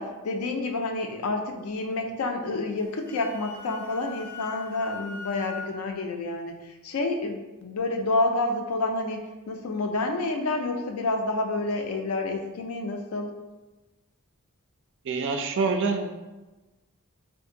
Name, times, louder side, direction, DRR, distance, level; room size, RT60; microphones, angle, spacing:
voice 1, 0.0-9.2 9.5-13.3, left 2 dB, 70° left, 4 dB, 0.4 m, -29 dB
Wind instrument woodwind instrument, 2.8-5.7, left 5 dB, 10° left, 0.4 m, -41 dB
voice 2, 15.1-16.1, right 4 dB, 55° right, 6 dB, 0.3 m, -26 dB
2.6 x 2.5 x 3.7 m, 1.1 s
head